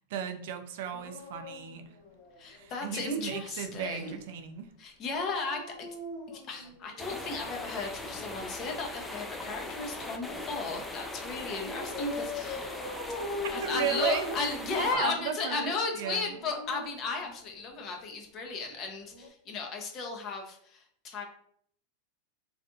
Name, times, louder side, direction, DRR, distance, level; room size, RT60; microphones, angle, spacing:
voice 1, 0.0-1.9 2.5-4.7 13.6-14.2 14.8-16.2, right 9 dB, 70° right, 7 dB, 0.4 m, -35 dB
Dog, 0.8-2.7 5.2-7.5 8.8-10.5 11.6-15.2 16.2-17.8 19.1-19.3, left 2 dB, 75° left, 1.0 m, -41 dB
voice 2, 2.4-4.2 4.8-5.9 6.3-12.8 13.5-21.2, left 4 dB, 40° left, 2 dB, 0.7 m, -35 dB
sound 1, 7.0-15.0, left 2 dB, 5° left, 0.4 m, -40 dB
3.3 x 2.5 x 2.6 m, 0.66 s
hypercardioid pair, 120°, 0 cm